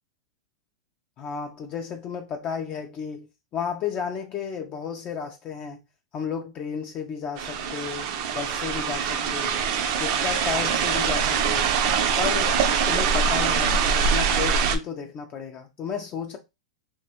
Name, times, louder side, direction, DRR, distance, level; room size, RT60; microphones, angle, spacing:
voice 1, 1.2-3.3 3.5-5.8 6.1-8.1 8.3-9.6 9.9-11.7 12.2-16.4, left 7 dB, 35° left, 0.3 m, -33 dB
sound 1, 7.4-14.8, right 6 dB, 50° right, 0.4 m, -23 dB
2.3 x 2.1 x 2.8 m
hypercardioid pair, 125°, 4 cm